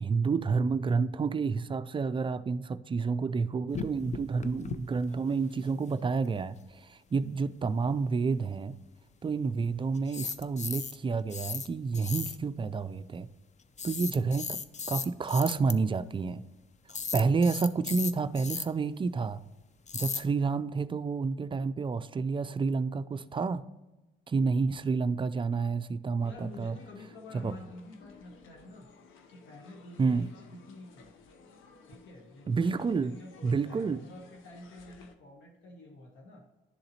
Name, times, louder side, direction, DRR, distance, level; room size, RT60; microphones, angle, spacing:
voice 1, 0.0-8.7 9.2-13.3 13.8-14.6 14.9-16.4 17.1-19.4 19.9-23.6 24.3-26.8 27.4-27.5 30.0-30.3 32.5-33.1 33.4-34.0, right 4 dB, 25° right, 13 dB, 0.3 m, -29 dB
sound 1, 3.7-4.8 5.0-5.1 5.4-5.5 10.0-11.0 11.3-11.7 11.9-12.4 13.8-15.7 16.9-18.6 19.9-20.2, left 5 dB, 35° left, 0.5 m, -36 dB
sound 2, 26.2-35.2, left 4 dB, 90° left, 0.7 m, -56 dB
voice 2, 26.2-28.9 29.3-31.1 31.8-36.5, left 2 dB, 70° left, 1 dB, 1.2 m, -49 dB
11.0 x 3.9 x 2.9 m, 1.1 s
cardioid pair, 90°, 20 cm